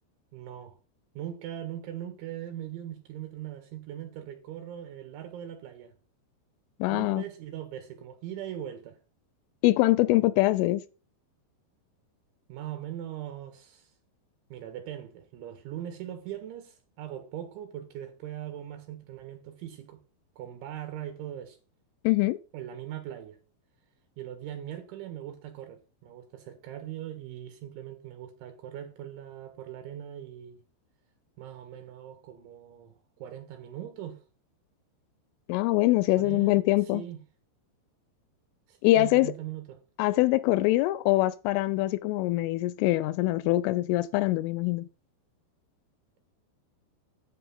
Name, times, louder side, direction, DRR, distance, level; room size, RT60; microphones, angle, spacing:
voice 1, 0.3-0.8 1.2-6.0 6.9-9.0 12.5-13.9 14.5-20.0 20.4-21.6 22.5-23.4 24.2-30.6 31.4-34.2 36.2-37.2 38.7-39.8, right 11 dB, 75° right, 3.8 m, -40 dB
voice 2, 6.8-7.2 9.6-10.8 22.0-22.4 35.5-37.0 38.8-39.3 40.0-44.9, left 18 dB, 85° left, 3.2 m, -24 dB
9.2 x 8.2 x 5.6 m
omnidirectional pair, 5.6 m